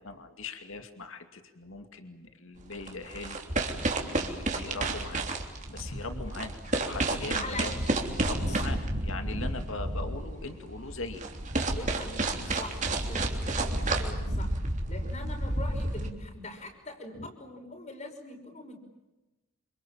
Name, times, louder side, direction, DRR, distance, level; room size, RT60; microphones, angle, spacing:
voice 1, 0.0-3.4 4.1-5.4 5.7-7.7 8.2-11.2 17.2-17.3, left 3 dB, 65° left, 7 dB, 2.4 m, -40 dB
sound 1, 2.6-16.1, right 2 dB, 35° right, 3.3 m, -31 dB
voice 2, 7.3-7.7 8.3-8.6 11.8-14.5 14.9-18.9, left 2 dB, 30° left, 4 dB, 5.5 m, -42 dB
28.0 x 27.5 x 7.5 m, 1.0 s
head